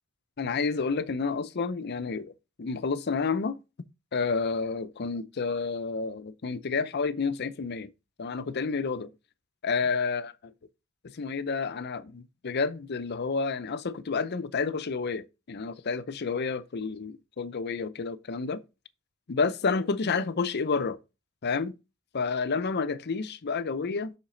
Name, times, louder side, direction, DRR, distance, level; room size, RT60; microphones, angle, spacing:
voice 1, 0.4-2.3 2.6-3.6 4.1-7.9 8.2-9.1 9.6-10.5 11.1-18.6 19.3-21.0 21.4-21.7 22.1-24.1, left 4 dB, 55° left, 0.6 m, -30 dB
7.3 x 5.8 x 3.8 m
head